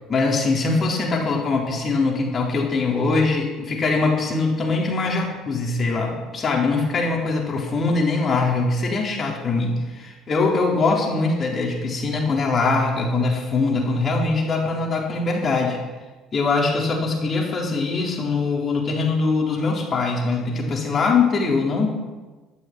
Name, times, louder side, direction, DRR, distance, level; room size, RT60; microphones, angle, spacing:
voice 1, 0.1-15.8 16.3-21.9, left 3 dB, 40° left, -1 dB, 4.0 m, -22 dB
12.5 x 12.0 x 6.2 m, 1.3 s
figure-of-eight pair, 55°, 0 cm